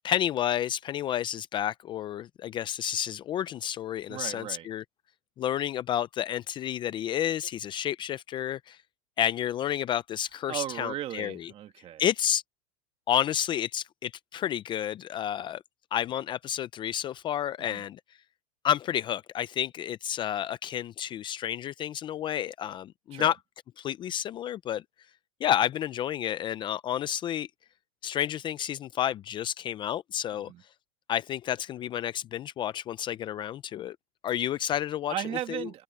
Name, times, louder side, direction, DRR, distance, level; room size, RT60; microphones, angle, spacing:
voice 1, 0.0-4.8 5.4-8.8 9.2-11.5 12.0-12.4 13.1-15.6 15.9-18.0 18.6-23.4 23.8-24.8 25.4-27.5 28.0-30.5 31.1-34.0 34.2-35.1 35.5-35.7, left 10 dB, 25° left, 0.5 m, -30 dB
voice 2, 4.1-4.7 10.5-12.0 17.7-17.8 23.1-23.3 30.4-30.6 35.1-35.8, right 12 dB, 30° right, 1.7 m, -36 dB
open air
supercardioid pair, 135°, 18 cm